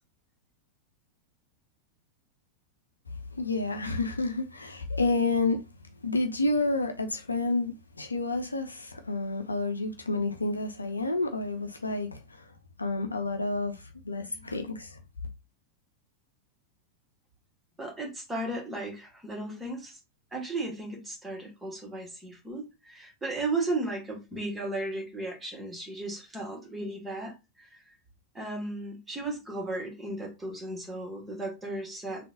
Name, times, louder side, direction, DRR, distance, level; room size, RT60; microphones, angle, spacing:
voice 1, 3.3-5.6 6.0-12.5 12.8-15.0, left 2 dB, 80° left, 0.6 m, -30 dB
voice 2, 17.8-20.0 20.3-27.9 28.3-32.3, right 2 dB, 10° right, 1.7 m, -35 dB
3.8 x 2.5 x 3.7 m
figure-of-eight pair, 90°, 0 cm